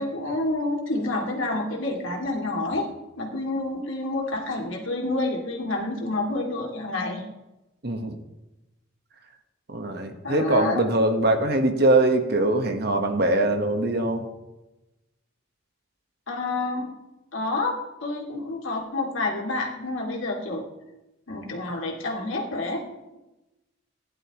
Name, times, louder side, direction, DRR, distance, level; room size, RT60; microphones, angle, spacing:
voice 1, 0.0-2.9 3.2-7.2 10.2-10.8 16.3-16.9 17.3-20.6 21.3-22.9, left 2 dB, 75° left, -1 dB, 2.5 m, -28 dB
voice 2, 7.8-8.2 9.7-14.3, right 2 dB, 50° right, 6 dB, 1.3 m, -22 dB
16.5 x 11.0 x 3.0 m, 0.99 s
head